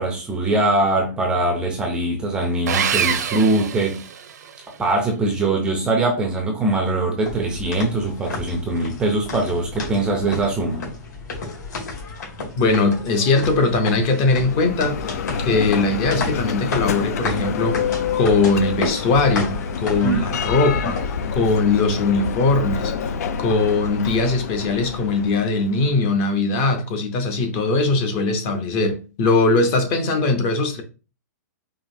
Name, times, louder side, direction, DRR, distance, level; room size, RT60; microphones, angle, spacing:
voice 1, 0.0-4.0 4.8-10.8 20.0-20.4, right 2 dB, 10° right, 0.5 m, -22 dB
Sawing, 2.7-4.6, right 7 dB, 70° right, 0.7 m, -24 dB
sound 1, 7.2-21.3, left 3 dB, 75° left, 2.1 m, -32 dB
voice 2, 12.6-15.1 15.4-17.8 18.1-21.0 21.3-22.9 23.4-30.8, left 3 dB, 30° left, 0.7 m, -20 dB
Bell, 14.2-26.0, left 7 dB, 60° left, 0.4 m, -28 dB
4.9 x 2.7 x 2.6 m
hypercardioid pair, 160°, 10 cm